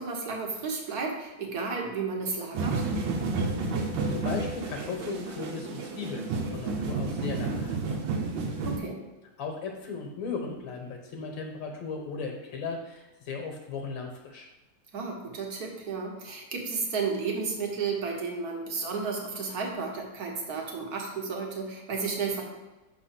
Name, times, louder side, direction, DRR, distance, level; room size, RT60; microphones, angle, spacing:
voice 1, 0.0-2.8 8.6-9.0 14.9-22.4, right 4 dB, 55° right, 1 dB, 1.5 m, -32 dB
sound 1, 2.5-8.8, right 3 dB, 85° right, 1.6 m, -31 dB
voice 2, 4.1-8.0 9.4-14.5, left 4 dB, 75° left, 2 dB, 1.7 m, -37 dB
6.0 x 3.9 x 5.8 m, 1.1 s
omnidirectional pair, 2.1 m